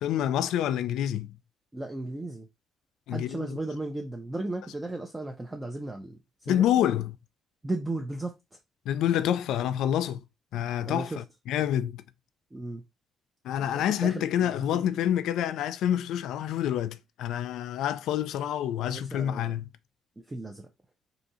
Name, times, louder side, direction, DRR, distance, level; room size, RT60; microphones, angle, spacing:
voice 1, 0.0-1.3 3.1-3.6 6.5-7.2 8.9-10.2 10.5-12.0 13.4-19.7, left 10 dB, 85° left, 0.3 m, -27 dB
voice 2, 1.7-2.5 3.1-6.7 7.6-8.4 10.8-11.2 12.5-12.8 13.7-14.9 18.9-19.5 20.3-20.7, right 2 dB, 10° right, 0.4 m, -35 dB
4.2 x 2.7 x 2.7 m
cardioid pair, 150°, 0 cm